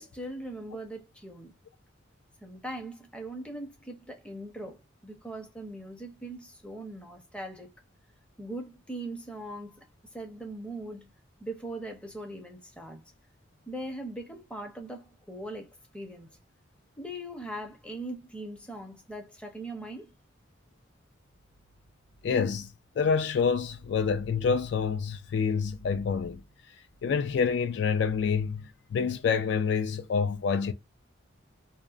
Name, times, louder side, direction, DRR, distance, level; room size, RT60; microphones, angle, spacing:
voice 1, 0.0-1.5 2.4-7.7 8.4-9.8 10.1-11.1 11.4-13.0 13.7-16.4 17.0-20.1, right 1 dB, 5° left, 0.6 m, -40 dB
voice 2, 22.2-22.7 23.0-26.4 27.0-30.7, left 6 dB, 60° left, 0.3 m, -27 dB
2.8 x 2.0 x 2.3 m
head